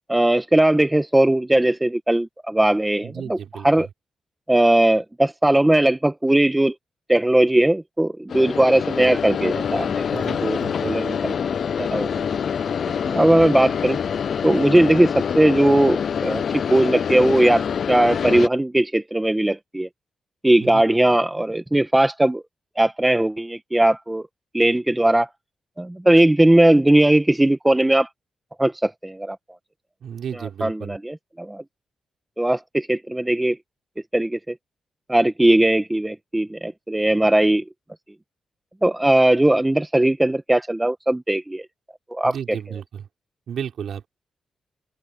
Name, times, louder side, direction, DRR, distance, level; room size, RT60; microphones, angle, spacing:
voice 1, 0.1-3.4 3.6-3.9 4.5-6.7 7.1-11.3 11.8-12.2 13.0-14.0 14.4-16.4 16.7-19.9 20.4-22.4 22.8-24.3 24.5-25.3 25.8-28.1 28.6-29.4 30.3-31.6 32.4-33.6 34.1-34.5 35.1-37.6 38.8-41.6 42.1-42.6, right 1 dB, 10° right, 1.4 m, -19 dB
voice 2, 3.0-3.9 10.1-11.0 20.6-20.8 30.0-31.0 42.2-43.1 43.5-44.1, right 8 dB, 75° right, 4.7 m, -33 dB
sound 1, 8.3-18.5, left 7 dB, 60° left, 0.5 m, -25 dB
open air
cardioid pair, 90°, 0 cm